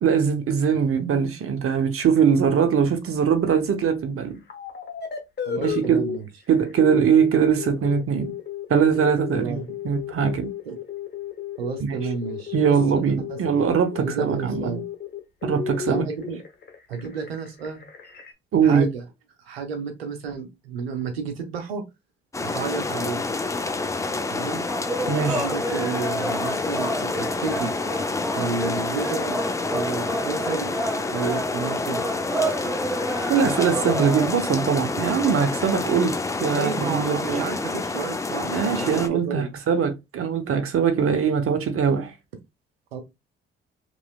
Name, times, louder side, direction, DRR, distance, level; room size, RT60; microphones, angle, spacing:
voice 1, 0.0-4.4 5.6-6.1 6.5-8.3 8.7-9.6 9.8-10.5 11.8-12.0 12.5-14.8 15.4-16.0 18.5-18.9 25.1-25.5 33.3-36.1 36.4-37.4 38.4-42.1, right 7 dB, 50° right, 0.8 m, -22 dB
sound 1, 4.5-6.2 6.6-18.3, left 8 dB, 35° left, 0.9 m, -33 dB
voice 2, 5.5-6.2 9.3-9.7 10.7-10.8 11.6-12.8 13.3-13.4 14.0-14.8 15.9-16.4 16.9-17.8 18.6-19.0 19.4-21.8 22.4-23.2 24.3-24.6 25.3-27.7 28.3-29.4 29.7-30.7 31.1-32.0 36.5-39.5 42.9-43.0, right 5 dB, 90° right, 0.6 m, -31 dB
sound 2, 22.3-39.1, left 3 dB, 10° left, 0.4 m, -28 dB
sound 3, 24.7-34.3, right 1 dB, 5° right, 1.0 m, -30 dB
3.0 x 3.0 x 2.3 m
hypercardioid pair, 45°, 30 cm